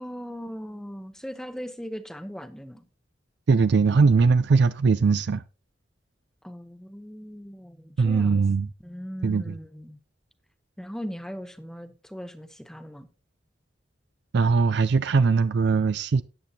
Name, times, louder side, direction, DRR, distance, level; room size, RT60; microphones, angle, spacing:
voice 1, 0.0-2.8 6.4-8.4 8.8-10.0 10.8-13.1, equal, 5° left, 0.8 m, -39 dB
voice 2, 3.5-5.4 8.0-8.7 9.2-9.6 14.3-16.2, right 4 dB, 65° right, 0.4 m, -20 dB
14.0 x 9.4 x 2.8 m
head